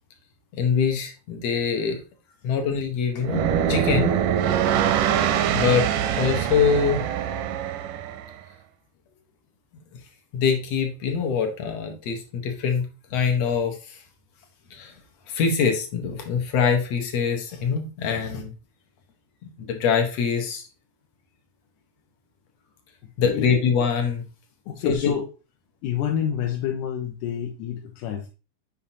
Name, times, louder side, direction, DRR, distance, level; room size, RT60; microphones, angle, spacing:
voice 1, 0.5-2.0 2.4-4.1 5.5-5.9 6.2-7.0 10.3-14.0 14.7-14.9 15.3-18.5 19.6-20.7 23.2-24.2 24.9-25.1, left 6 dB, 65° left, 5 dB, 1.7 m, -24 dB
sound 1, 3.2-8.3, right 9 dB, 85° right, 2.2 m, -23 dB
voice 2, 24.7-25.3 25.8-28.3, left 9 dB, 90° left, 1 dB, 2.3 m, -28 dB
7.1 x 5.0 x 2.8 m, 0.32 s
omnidirectional pair, 3.7 m